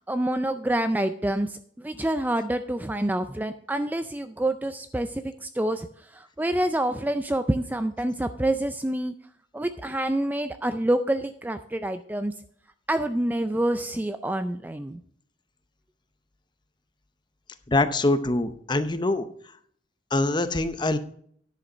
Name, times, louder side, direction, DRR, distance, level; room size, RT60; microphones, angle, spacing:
voice 1, 0.0-9.1 9.5-12.3 12.9-15.0, right 1 dB, 10° right, 9 dB, 0.4 m, -27 dB
voice 2, 17.7-19.3 20.1-21.0, left 2 dB, 25° left, 11 dB, 0.7 m, -24 dB
10.5 x 6.4 x 5.5 m, 0.62 s
head